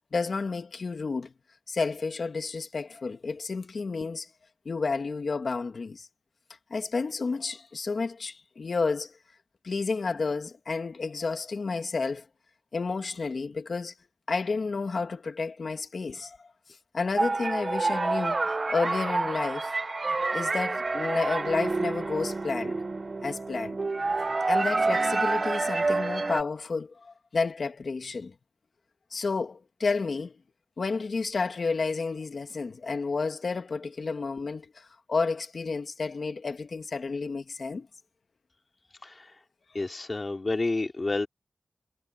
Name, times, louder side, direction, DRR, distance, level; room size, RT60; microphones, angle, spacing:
voice 1, 0.1-1.3 1.7-4.3 4.7-6.1 6.7-9.2 9.6-12.2 12.7-13.9 14.3-16.4 16.9-19.7 20.3-22.8 23.2-23.8 24.5-28.3 29.1-30.3 30.8-37.9, left 4 dB, 70° left, 2.1 m, -31 dB
sound 1, 17.2-26.4, right 3 dB, 50° right, 1.1 m, -28 dB
voice 2, 39.7-41.3, left 2 dB, 45° left, 2.8 m, -29 dB
cardioid pair, 50°, 0 cm